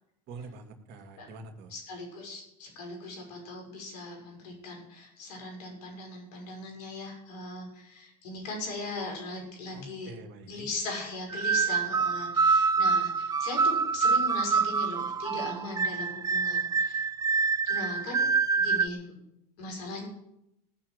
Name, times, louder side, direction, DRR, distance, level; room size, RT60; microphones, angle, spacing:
voice 1, 0.3-1.7 9.7-10.7, right 3 dB, 60° right, 5 dB, 2.1 m, -45 dB
voice 2, 1.7-10.1 10.5-17.1 17.7-18.3 18.6-19.2 19.6-20.1, left 2 dB, 80° left, 2 dB, 6.2 m, -39 dB
sound 1, 11.3-18.9, right 5 dB, 20° right, 0.4 m, -26 dB
18.0 x 6.3 x 9.2 m, 0.83 s
hypercardioid pair, 90°, 20 cm